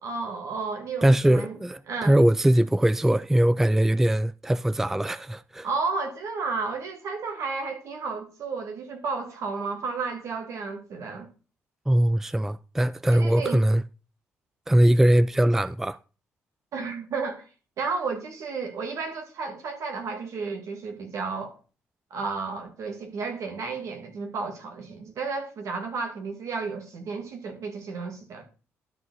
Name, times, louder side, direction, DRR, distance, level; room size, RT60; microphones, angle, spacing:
voice 1, 0.0-1.6 1.9-2.2 5.6-11.3 13.1-13.6 16.7-17.4 17.8-21.6 22.1-28.4, right 4 dB, 70° right, 2.2 m, -32 dB
voice 2, 1.0-5.7 11.9-13.8 14.7-16.0, right 1 dB, 5° right, 0.3 m, -21 dB
12.5 x 4.8 x 4.1 m
supercardioid pair, 65°, 6 cm